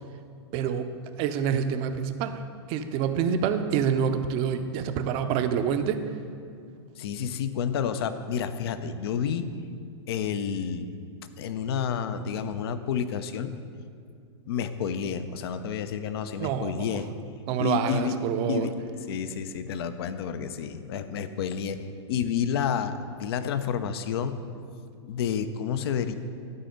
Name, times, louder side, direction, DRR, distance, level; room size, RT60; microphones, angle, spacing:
voice 1, 0.5-0.9 1.2-2.4 2.7-6.0 16.4-16.9 17.5-18.7, right 7 dB, 35° right, 9 dB, 0.6 m, -27 dB
voice 2, 7.0-9.5 10.1-10.9 11.4-13.6 14.5-17.1 17.6-18.2 18.4-21.8 22.1-24.4 25.0-26.1, left 7 dB, 55° left, 11 dB, 0.6 m, -30 dB
12.5 x 4.2 x 5.2 m, 2.3 s
hypercardioid pair, 110°, 15 cm